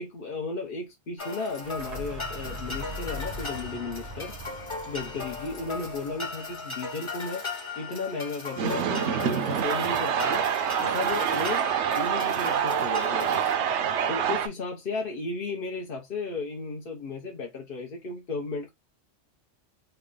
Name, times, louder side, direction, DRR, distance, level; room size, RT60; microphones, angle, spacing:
voice 1, 0.0-4.3 4.9-7.5 7.8-10.5 10.8-11.7 11.9-13.3 14.1-18.7, left 3 dB, 50° left, 0.9 m, -34 dB
sound 1, 1.2-13.5, left 3 dB, 25° left, 1.1 m, -37 dB
sound 2, 1.5-7.3, equal, 40° right, 0.7 m, -41 dB
sound 3, 8.6-14.5, right 8 dB, 70° right, 0.8 m, -26 dB
3.3 x 2.2 x 3.7 m
omnidirectional pair, 1.3 m